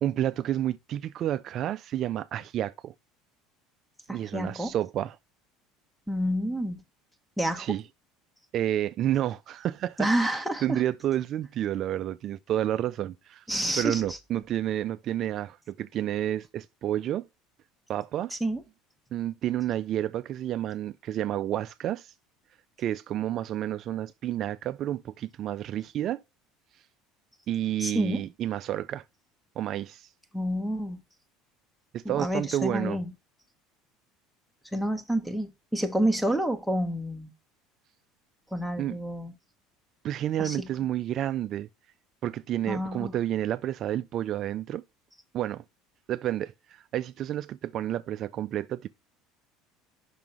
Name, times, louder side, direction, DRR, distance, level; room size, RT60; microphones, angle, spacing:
voice 1, 0.0-2.9 4.1-5.2 7.6-7.8 8.5-13.4 13.8-17.2 17.9-18.3 19.1-22.1 22.8-26.2 27.5-29.0 29.6-30.1 31.9-33.0 38.8-39.0 40.0-41.7 42.2-44.8 45.3-45.6 46.1-48.9, right 12 dB, 50° right, 0.3 m, -30 dB
voice 2, 4.1-4.7 6.1-6.8 7.4-7.8 10.0-10.8 13.5-14.0 18.3-18.6 27.8-28.2 30.3-31.0 32.0-33.1 34.7-37.3 38.5-39.3 40.4-40.7 42.7-43.2, right 1 dB, ahead, 1.2 m, -29 dB
5.8 x 3.8 x 6.0 m
supercardioid pair, 90°, 0 cm